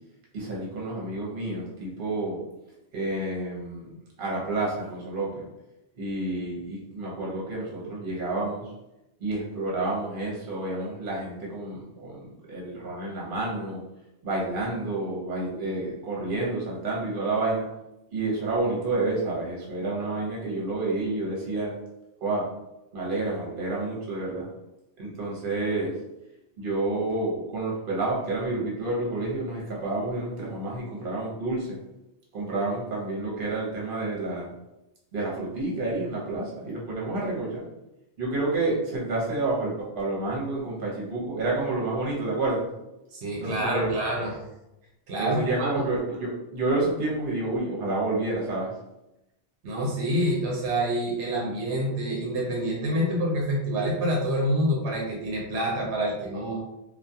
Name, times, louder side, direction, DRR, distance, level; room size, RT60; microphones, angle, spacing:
voice 1, 0.3-2.4 2.9-3.9 4.2-5.4 6.0-8.7 9.2-13.8 14.2-17.7 18.1-21.7 22.2-22.5 22.9-24.5 25.0-25.9 26.6-31.8 32.3-34.5 35.1-37.6 38.2-42.7 43.4-43.9 45.2-48.7, right 2 dB, 55° right, -4 dB, 1.0 m, -29 dB
voice 2, 43.1-44.4 45.1-45.8 49.6-56.6, equal, 80° right, -2 dB, 0.9 m, -27 dB
2.3 x 2.3 x 2.7 m, 0.92 s
omnidirectional pair, 1.1 m